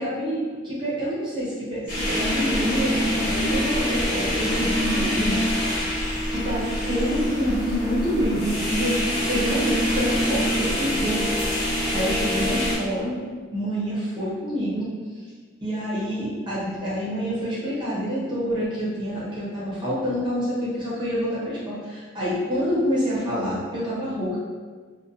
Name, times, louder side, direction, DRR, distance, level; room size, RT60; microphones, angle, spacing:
voice 1, 0.0-5.6 5.9-9.0 9.3-11.2 11.6-13.2 13.5-14.9 15.6-24.4, equal, 20° right, -9 dB, 0.6 m, -27 dB
sound 1, 1.9-12.8, left 1 dB, 40° left, 0.8 m, -25 dB
2.6 x 2.1 x 2.5 m, 1.5 s
head